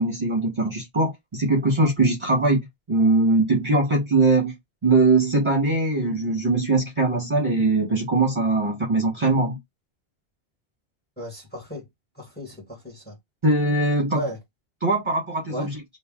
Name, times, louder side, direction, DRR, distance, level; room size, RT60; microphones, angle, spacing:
voice 1, 0.0-4.5 4.8-9.6 13.4-14.2 14.8-15.7, right 2 dB, 25° right, 1.3 m, -21 dB
voice 2, 11.2-11.9 12.1-13.2 14.1-14.4 15.5-15.7, right 1 dB, 10° left, 1.5 m, -34 dB
3.3 x 2.4 x 3.6 m
omnidirectional pair, 1.1 m